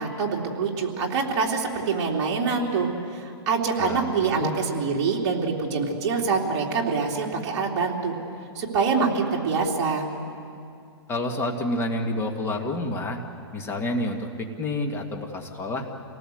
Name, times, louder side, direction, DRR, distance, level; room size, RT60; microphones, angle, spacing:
voice 1, 0.0-8.1 8.5-10.1, right 4 dB, 40° right, -1 dB, 3.3 m, -25 dB
voice 2, 3.8-4.6 11.1-13.2 13.5-15.9, left 1 dB, 15° left, 2 dB, 2.1 m, -29 dB
28.0 x 18.5 x 8.0 m, 2.5 s
hypercardioid pair, 145°, 15 cm